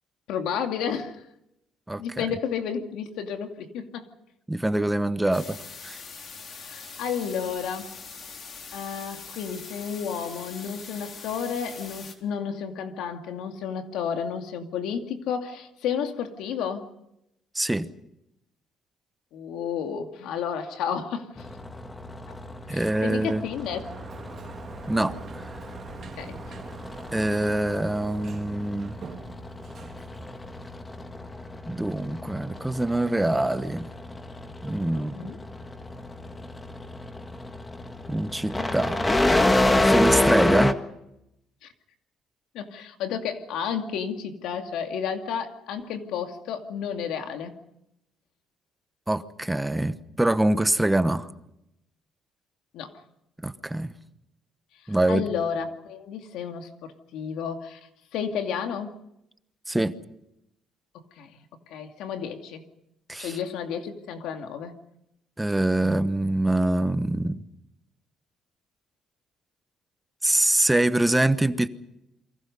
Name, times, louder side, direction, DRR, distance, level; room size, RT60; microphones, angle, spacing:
voice 1, 0.3-1.2 2.0-4.1 6.5-7.9 8.7-16.9 19.3-21.5 22.3-22.4 22.7-23.9 26.2-26.4 34.9-35.4 41.6-41.7 42.5-47.6 52.7-52.9 55.1-57.8 58.1-58.9 60.9-61.4 61.7-62.6 63.2-64.8, left 7 dB, 80° left, 5 dB, 2.5 m, -32 dB
voice 2, 1.9-2.3 4.5-6.0 17.5-17.9 22.7-23.4 24.9-25.5 27.1-28.9 31.7-33.9 34.6-35.3 38.1-39.0 39.8-40.7 49.1-51.3 53.4-53.9 54.9-55.2 59.7-60.0 63.1-63.4 65.4-67.4 70.2-71.7, right 1 dB, 10° right, 11 dB, 1.1 m, -24 dB
sound 1, 5.3-12.2, left 5 dB, 50° left, 4.0 m, -42 dB
sound 2, 21.4-40.7, left 1 dB, 15° left, 1.6 m, -29 dB
Sliding door, 23.3-31.0, right 6 dB, 45° right, 1.8 m, -45 dB
28.5 x 23.5 x 5.4 m, 0.84 s
cardioid pair, 105°, 0 cm